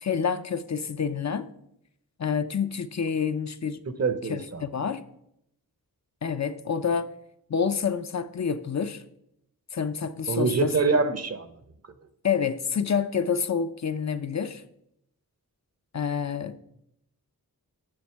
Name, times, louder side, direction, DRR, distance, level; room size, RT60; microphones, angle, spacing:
voice 1, 0.0-1.5 2.2-3.8 4.3-5.0 6.2-7.1 7.5-9.0 9.7-10.7 12.2-14.6 15.9-16.6, left 6 dB, 45° left, 0.6 m, -28 dB
voice 2, 3.9-4.6 10.3-11.5, right 4 dB, 40° right, 0.8 m, -25 dB
8.8 x 6.5 x 4.5 m
wide cardioid pair, 70°, 37 cm